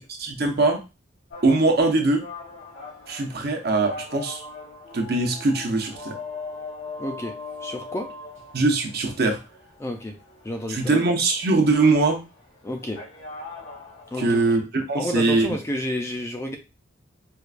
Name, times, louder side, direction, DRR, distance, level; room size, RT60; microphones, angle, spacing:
voice 1, 0.2-0.8 1.4-2.2 3.1-4.4 4.9-6.1 8.5-9.4 10.7-12.2 14.2-15.5, right 3 dB, 50° right, 3 dB, 0.7 m, -21 dB
sound 1, 1.3-14.5, left 3 dB, 85° left, 1.4 m, -41 dB
voice 2, 7.0-7.3 7.6-8.1 9.8-10.2 10.4-11.0 12.6-13.0 14.1-14.4 15.0-16.6, left 1 dB, 15° left, 4 dB, 0.3 m, -30 dB
4.5 x 2.2 x 2.4 m, 0.28 s
head